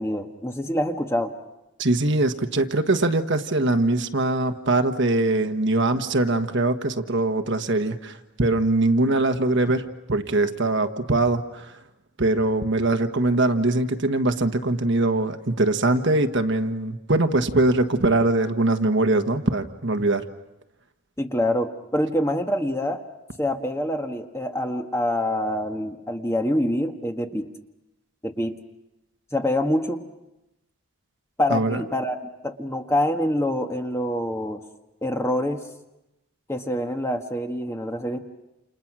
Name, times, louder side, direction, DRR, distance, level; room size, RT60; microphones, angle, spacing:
voice 1, 0.0-1.3 21.2-23.0 23.4-27.5 28.2-28.5 29.3-30.0 31.4-32.1 32.4-34.6 35.0-35.6 36.5-38.2, left 1 dB, 10° left, 4 dB, 1.4 m, -25 dB
voice 2, 1.8-11.7 12.2-20.2 31.5-31.8, right 2 dB, 55° right, 7 dB, 1.4 m, -22 dB
29.5 x 28.5 x 6.2 m, 0.95 s
head